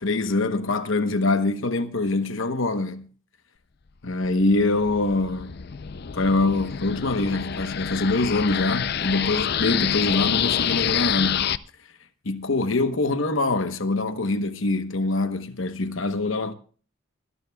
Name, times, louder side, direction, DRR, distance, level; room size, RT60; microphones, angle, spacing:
voice 1, 0.0-3.1 4.0-5.6 6.1-11.5 12.2-16.5, left 2 dB, 70° left, 1.0 m, -24 dB
sound 1, 4.2-11.6, left 9 dB, 50° left, 0.5 m, -27 dB
25.0 x 11.5 x 2.3 m
head